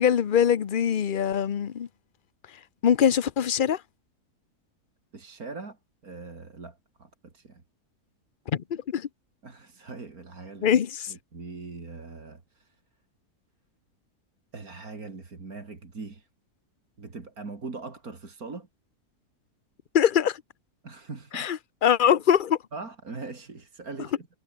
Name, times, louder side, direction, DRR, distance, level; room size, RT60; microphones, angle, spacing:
voice 1, 0.0-1.9 2.8-3.8 8.5-9.1 10.6-11.1 19.9-20.4 21.3-22.6, left 8 dB, 45° left, 0.7 m, -23 dB
voice 2, 5.1-7.6 9.4-10.7 11.1-12.8 14.5-16.3 17.0-18.7 20.8-21.5 22.7-24.3, right 4 dB, 65° right, 3.5 m, -41 dB
omnidirectional pair, 1.7 m